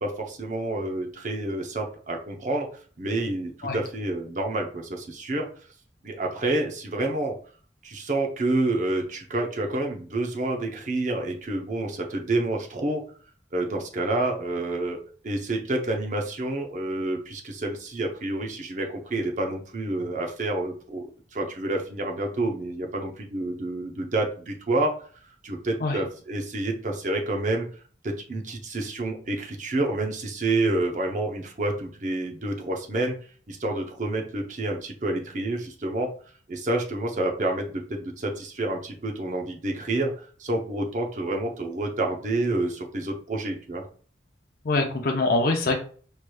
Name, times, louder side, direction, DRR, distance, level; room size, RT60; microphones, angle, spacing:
voice 1, 0.0-2.7 3.0-5.5 6.0-7.4 7.8-13.0 13.5-15.0 15.2-21.0 21.3-24.9 25.4-27.7 28.0-33.1 33.5-36.1 36.5-43.9, right 2 dB, 45° right, 2 dB, 0.7 m, -28 dB
voice 2, 44.6-45.8, left 2 dB, 55° left, 1 dB, 0.6 m, -24 dB
4.7 x 3.2 x 2.2 m, 0.43 s
head